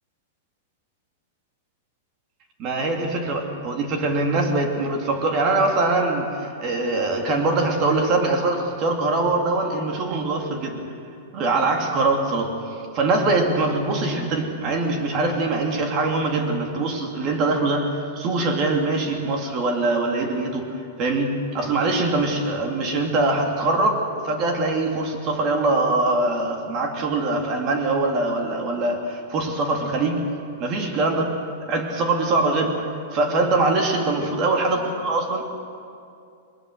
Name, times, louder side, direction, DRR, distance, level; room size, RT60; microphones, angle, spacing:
voice 1, 2.6-10.8 11.3-12.5 12.9-20.7 21.0-30.3 30.6-31.3 31.7-32.8 33.1-35.6, right 2 dB, 30° right, 3 dB, 2.6 m, -23 dB
21.5 x 20.5 x 6.6 m, 2.5 s
supercardioid pair, 165°, 0 cm